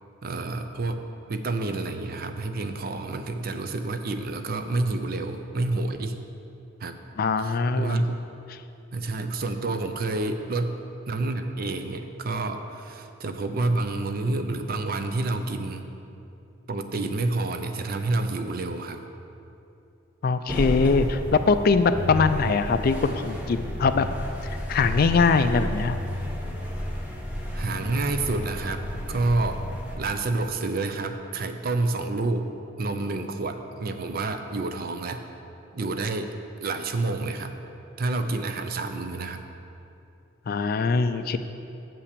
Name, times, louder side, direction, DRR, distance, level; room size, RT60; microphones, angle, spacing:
voice 1, 0.2-6.2 6.8-7.0 7.4-8.2 8.9-15.8 16.7-19.0 27.5-29.6 30.0-32.5 32.8-35.2 35.7-36.3 36.6-37.5 38.0-39.4, right 2 dB, 50° right, 7 dB, 0.5 m, -29 dB
voice 2, 7.2-8.0 20.2-24.1 24.7-26.0 40.5-41.4, left 4 dB, 50° left, 10 dB, 0.3 m, -22 dB
sound 1, 20.5-30.0, equal, 5° right, 0.9 m, -32 dB
7.0 x 5.8 x 6.7 m, 2.7 s
head